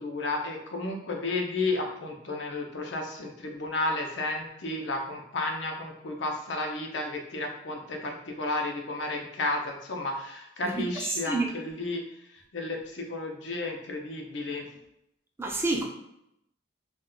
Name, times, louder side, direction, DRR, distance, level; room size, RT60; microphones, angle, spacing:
voice 1, 0.0-12.0 12.3-14.6, left 2 dB, 80° left, 2 dB, 0.5 m, -32 dB
voice 2, 10.6-11.5 15.4-15.9, right 2 dB, 15° right, 1 dB, 0.3 m, -29 dB
2.3 x 2.2 x 3.7 m, 0.78 s
head